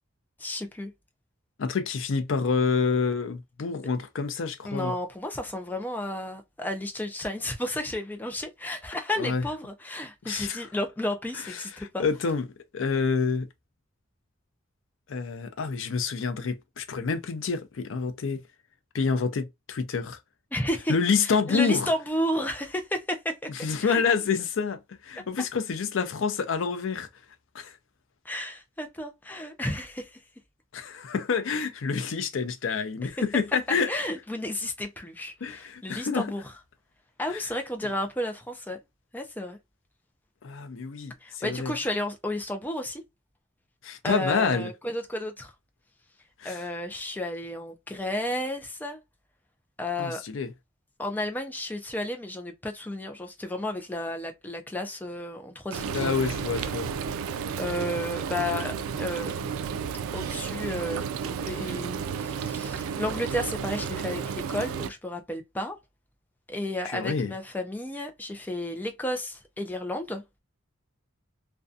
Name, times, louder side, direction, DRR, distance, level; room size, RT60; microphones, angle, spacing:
voice 1, 0.4-0.9 4.6-12.0 20.5-20.9 21.2-23.5 23.8-24.1 28.2-30.2 33.9-36.5 37.2-38.8 39.1-39.6 41.2-43.0 44.0-45.5 46.4-49.0 49.8-50.2 51.0-56.1 56.4-56.5 57.6-59.4 60.1-65.8 66.5-70.2, left 1 dB, 10° left, 0.4 m, -32 dB
voice 2, 1.6-4.9 9.2-9.4 10.2-10.7 11.5-12.4 12.7-13.5 15.1-18.4 18.9-20.2 20.9-21.9 23.5-27.1 27.5-27.7 30.7-33.9 35.4-36.3 37.3-37.4 40.4-41.7 43.8-44.7 46.4-46.6 50.0-50.5 55.9-56.9 66.9-67.3, left 5 dB, 70° left, 0.4 m, -28 dB
Frying (food), 55.7-64.9, right 6 dB, 90° right, 0.3 m, -32 dB
2.5 x 2.2 x 2.3 m
head